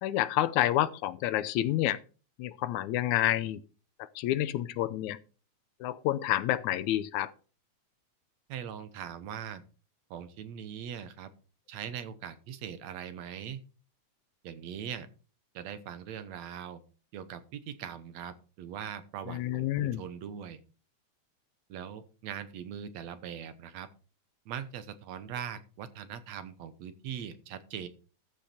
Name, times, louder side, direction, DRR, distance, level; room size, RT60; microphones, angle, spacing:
voice 1, 0.0-2.0 2.4-3.6 4.0-5.2 5.8-7.3 19.3-20.0, left 13 dB, 90° left, 2.1 m, -29 dB
voice 2, 8.5-9.6 10.1-11.3 11.7-13.6 14.4-15.1 15.5-16.8 17.1-20.6 21.7-23.9 24.5-27.9, right 8 dB, 70° right, 2.1 m, -41 dB
14.0 x 6.5 x 4.3 m
omnidirectional pair, 3.3 m